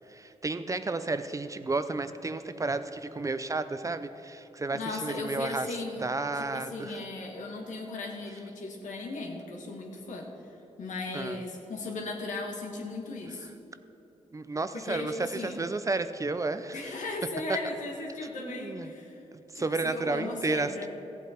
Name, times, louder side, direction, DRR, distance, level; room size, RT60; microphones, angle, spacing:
voice 1, 0.1-7.0 11.1-11.4 14.3-16.9 18.4-18.9 19.5-20.9, right 3 dB, 25° right, 11 dB, 0.5 m, -32 dB
voice 2, 4.7-6.0 6.3-10.3 10.8-13.5 14.7-15.6 16.7-19.2 19.5-20.9, left 2 dB, 80° left, 1 dB, 1.6 m, -37 dB
14.5 x 8.1 x 4.4 m, 3.0 s
cardioid pair, 75°, 13 cm